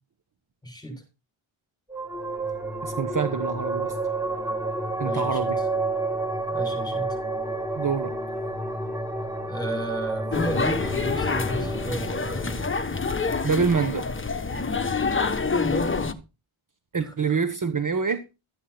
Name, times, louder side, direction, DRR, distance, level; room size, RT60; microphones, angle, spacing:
voice 1, 0.6-1.0 5.0-5.5 6.5-7.2 9.5-12.7 15.7-15.8 17.0-17.1, right 1 dB, 10° left, 6.8 m, -33 dB
sound 1, 1.9-14.8, right 2 dB, 5° right, 4.8 m, -31 dB
voice 2, 2.8-4.0 5.0-5.6 7.7-8.2 13.4-14.1 16.9-18.2, right 5 dB, 40° right, 1.2 m, -26 dB
sound 2, 10.3-16.1, left 4 dB, 25° left, 1.2 m, -27 dB
13.5 x 9.7 x 4.3 m
wide cardioid pair, 120°, 48 cm